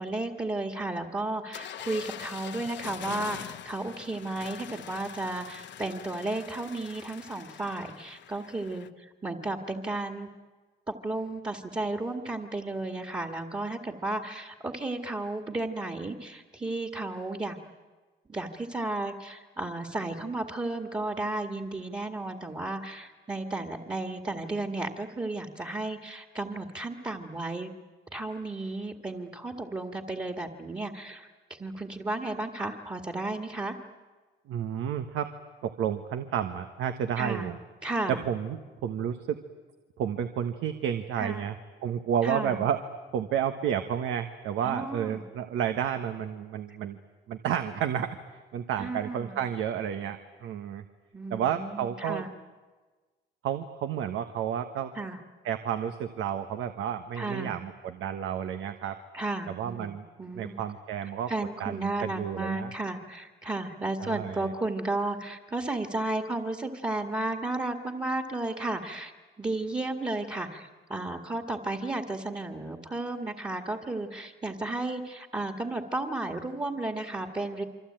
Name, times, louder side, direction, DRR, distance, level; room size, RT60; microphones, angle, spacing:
voice 1, 0.0-10.3 10.9-17.6 18.3-27.7 28.1-33.8 37.2-37.5 37.8-38.2 41.2-41.4 42.2-42.6 44.6-45.2 46.7-46.8 48.8-49.4 51.1-52.3 54.9-55.2 57.2-57.6 59.1-60.6 61.3-69.1 69.4-77.6, right 2 dB, 20° right, 5 dB, 2.1 m, -33 dB
sound 1, 1.5-8.9, left 10 dB, 65° left, 1.0 m, -43 dB
voice 2, 34.5-35.3 35.6-37.6 38.1-39.4 40.0-41.6 41.8-42.8 43.1-47.0 47.3-48.2 48.5-50.8 51.3-52.2 53.4-54.9 55.4-59.0 59.5-60.0 60.3-61.3 61.6-62.7 64.0-64.5, right 9 dB, 85° right, 8 dB, 1.3 m, -31 dB
27.0 x 24.5 x 9.0 m, 1.4 s
cardioid pair, 90°, 20 cm